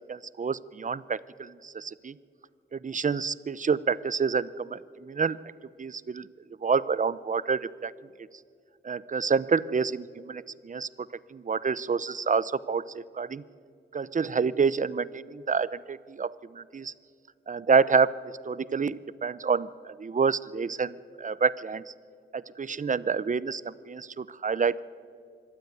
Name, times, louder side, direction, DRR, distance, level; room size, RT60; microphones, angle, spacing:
voice 1, 0.1-2.1 2.7-5.4 5.8-6.3 6.6-7.9 8.2-8.3 8.8-13.4 13.9-16.9 17.5-21.9 22.3-24.8, right 5 dB, 45° right, 18 dB, 0.6 m, -28 dB
25.5 x 12.0 x 9.3 m, 2.3 s
wide cardioid pair, 90°, 19 cm